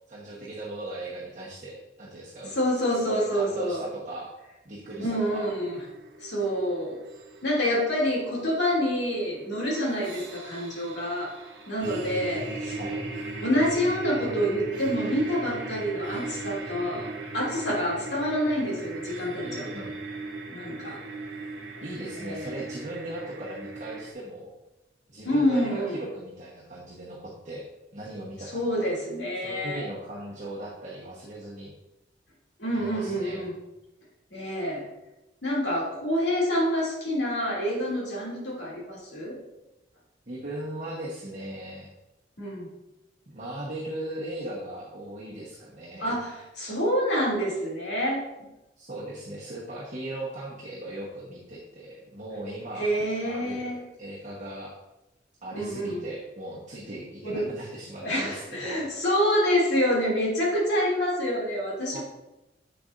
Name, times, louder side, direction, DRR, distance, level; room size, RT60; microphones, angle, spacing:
voice 1, 0.1-2.5 2.9-4.3 4.6-5.4 12.8-13.1 19.4-19.9 21.8-24.5 25.1-27.7 27.9-28.9 29.4-31.7 32.7-33.5 40.3-41.9 43.3-46.2 48.8-52.9 53.2-54.7 55.4-58.9 61.9-62.0, right 1 dB, 40° right, -6 dB, 1.1 m, -38 dB
voice 2, 2.5-3.8 5.0-5.8 6.2-7.0 7.4-11.3 11.7-12.8 13.4-17.1 17.3-19.9 20.5-21.0 22.1-22.6 25.2-26.0 28.5-29.8 32.6-33.5 34.3-34.8 35.4-39.4 42.4-42.7 46.0-48.2 52.7-53.8 55.5-56.0 57.2-57.5 58.0-62.0, equal, 65° left, -4 dB, 2.7 m, -27 dB
sound 1, 4.8-24.1, right 2 dB, 70° right, 1.1 m, -38 dB
7.9 x 6.7 x 2.6 m, 0.97 s
head